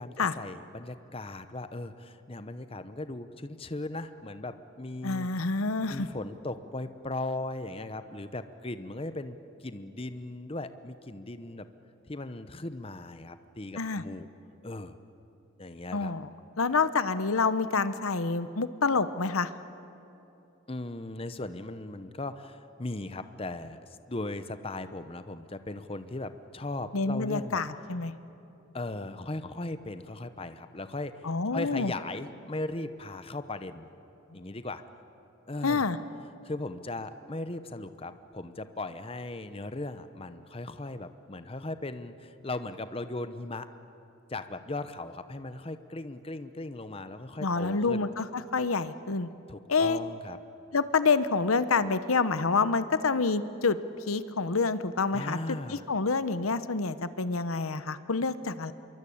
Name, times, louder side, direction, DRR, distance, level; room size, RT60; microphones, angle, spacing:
voice 1, 0.0-5.3 5.9-11.7 12.1-14.3 14.6-15.0 15.6-16.1 20.7-27.6 28.7-33.9 34.3-34.8 35.5-35.8 36.4-43.7 44.3-48.1 49.5-50.4 55.1-55.8, left 2 dB, 25° left, 11 dB, 0.8 m, -38 dB
voice 2, 5.0-6.1 13.8-14.0 15.9-16.3 16.6-19.5 26.9-28.1 31.2-31.9 35.6-36.0 47.4-49.3 49.7-50.0 50.7-53.8 54.1-58.7, left 4 dB, 90° left, 13 dB, 1.0 m, -27 dB
26.0 x 23.0 x 8.7 m, 3.0 s
head